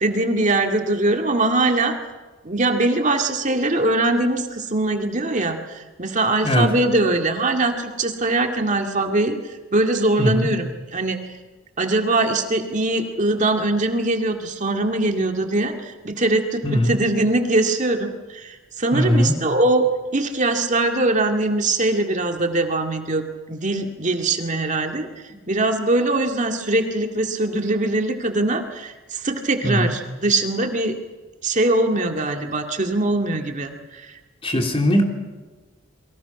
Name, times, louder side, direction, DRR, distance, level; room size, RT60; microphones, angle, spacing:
voice 1, 0.0-1.9 2.4-9.4 9.7-11.2 11.8-19.9 20.1-23.2 23.5-25.1 25.5-30.9 31.4-34.1, right 2 dB, 40° right, 4 dB, 2.1 m, -22 dB
voice 2, 18.9-19.3 29.6-29.9 34.4-35.0, left 1 dB, 30° left, 3 dB, 3.1 m, -19 dB
29.5 x 23.5 x 6.0 m, 1.2 s
head